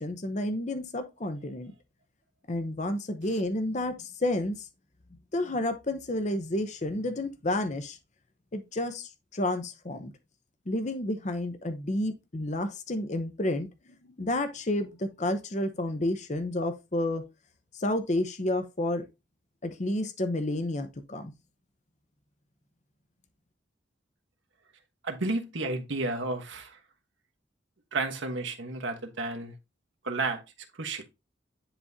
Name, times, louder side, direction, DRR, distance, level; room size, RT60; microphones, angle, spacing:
voice 1, 0.0-1.7 2.5-4.7 5.3-8.0 8.5-10.1 10.7-13.7 14.0-17.2 17.7-19.1 19.6-21.3, left 1 dB, 40° left, 0.7 m, -30 dB
voice 2, 25.0-26.8 27.9-29.5 30.0-30.4 30.8-31.0, right 3 dB, 85° right, 1.2 m, -32 dB
10.0 x 3.6 x 2.7 m
head